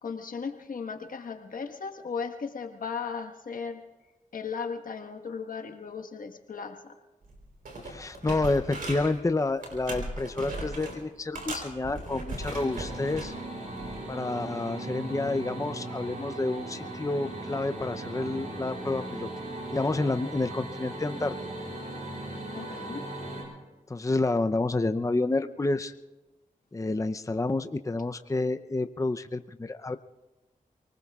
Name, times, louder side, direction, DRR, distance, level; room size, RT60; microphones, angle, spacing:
voice 1, 0.0-3.8 4.3-6.9 22.5-23.1, left 5 dB, 75° left, 4 dB, 1.5 m, -36 dB
sound 1, 7.2-7.4 7.6-9.2 9.6-11.0 11.3-13.3 13.8-14.0, right 2 dB, 85° right, 3.9 m, -37 dB
voice 2, 7.8-13.3 14.1-19.3 19.7-21.3 23.9-25.9 26.7-30.0, left 2 dB, 20° left, 8 dB, 0.6 m, -29 dB
sound 2, 12.4-23.4, right 2 dB, 60° right, 7.7 m, -38 dB
29.0 x 19.5 x 2.4 m, 1.1 s
cardioid pair, 40°, 14 cm